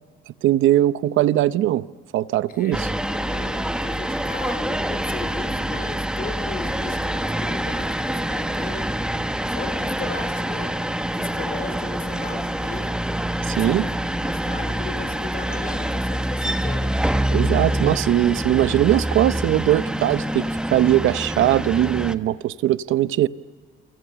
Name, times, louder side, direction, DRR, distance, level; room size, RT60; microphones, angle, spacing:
voice 1, 0.4-1.9 2.1-2.9 13.4-13.8 17.3-23.3, right 13 dB, 80° right, 0.8 m, -20 dB
voice 2, 2.5-9.0 9.5-13.0 13.4-17.0, left 4 dB, 50° left, 4.0 m, -37 dB
sound 1, 2.7-22.1, right 1 dB, 5° right, 1.3 m, -26 dB
29.0 x 25.0 x 6.9 m
cardioid pair, 90°, 20 cm